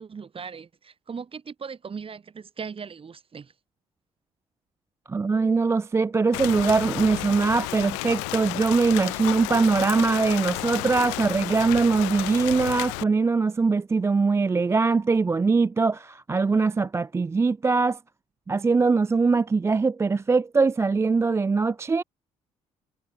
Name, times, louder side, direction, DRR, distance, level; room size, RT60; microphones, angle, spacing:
voice 1, 0.0-3.5, right 6 dB, 40° right, 1.9 m, -38 dB
voice 2, 5.1-18.0 18.5-22.0, right 4 dB, 20° right, 0.3 m, -22 dB
Rain, 6.3-13.0, left 34 dB, 85° left, 1.0 m, -32 dB
hypercardioid pair, 55°, 15 cm